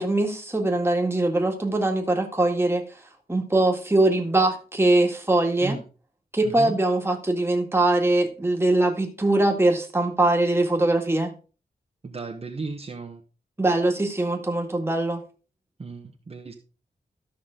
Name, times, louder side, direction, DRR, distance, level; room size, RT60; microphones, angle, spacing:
voice 1, 0.0-2.8 3.3-5.8 6.3-11.3 13.6-15.2, right 2 dB, 15° right, 2 dB, 1.8 m, -22 dB
voice 2, 6.4-6.7 12.0-13.2 15.8-16.5, right 3 dB, 40° right, 2 dB, 1.1 m, -34 dB
13.5 x 5.9 x 3.8 m, 0.35 s
wide cardioid pair, 115°, 17 cm